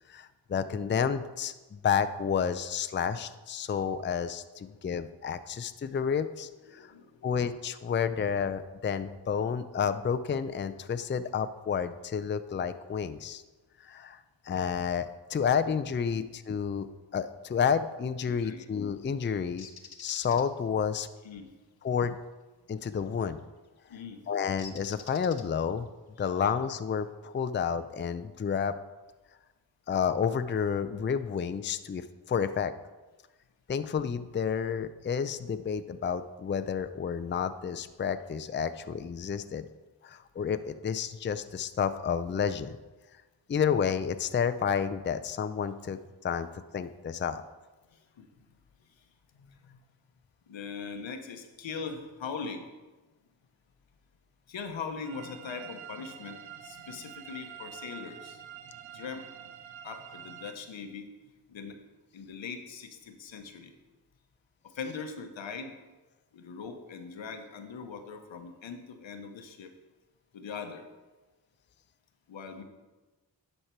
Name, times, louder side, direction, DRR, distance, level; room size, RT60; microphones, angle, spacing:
voice 1, 0.1-6.9 7.2-13.4 13.8-14.2 14.5-16.9 17.1-19.7 20.0-21.1 21.8-22.2 22.7-23.4 24.3-25.9 26.2-28.7 29.9-32.7 33.7-39.6 40.0-42.7 43.5-46.5 46.7-47.4, left 7 dB, 25° left, 11 dB, 0.4 m, -30 dB
voice 2, 6.6-7.3 16.1-16.2 18.3-18.7 21.2-21.5 23.9-24.2 26.2-26.5 47.9-48.3 49.3-49.8 50.5-52.7 54.5-58.4 58.9-59.3 59.8-61.1 61.5-61.8 62.1-63.8 64.7-65.7 66.3-69.7 70.3-70.9 72.3-72.6, left 5 dB, 80° left, 6 dB, 1.0 m, -41 dB
Bird, 19.6-20.4 23.1-23.3 24.6-25.8, left 6 dB, 55° left, 0.9 m, -47 dB
sound 1, 55.0-60.5, right 10 dB, 85° right, 0.8 m, -47 dB
11.5 x 4.4 x 4.5 m, 1.2 s
cardioid pair, 40°, 45 cm